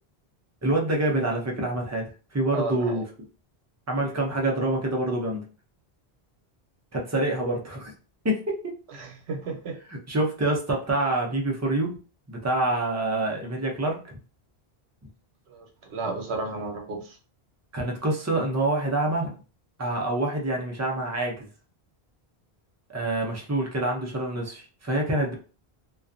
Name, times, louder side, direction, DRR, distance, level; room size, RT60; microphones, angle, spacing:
voice 1, 0.6-2.1 2.3-3.0 3.9-5.4 6.9-7.9 8.2-8.7 9.9-12.0 12.3-14.2 17.7-19.3 19.8-21.5 22.9-25.3, right 2 dB, 25° right, 0 dB, 0.3 m, -26 dB
voice 2, 2.5-3.0 9.0-9.7 15.5-17.2, right 3 dB, 85° right, 2 dB, 1.0 m, -33 dB
2.4 x 2.3 x 2.5 m, 0.36 s
omnidirectional pair, 1.1 m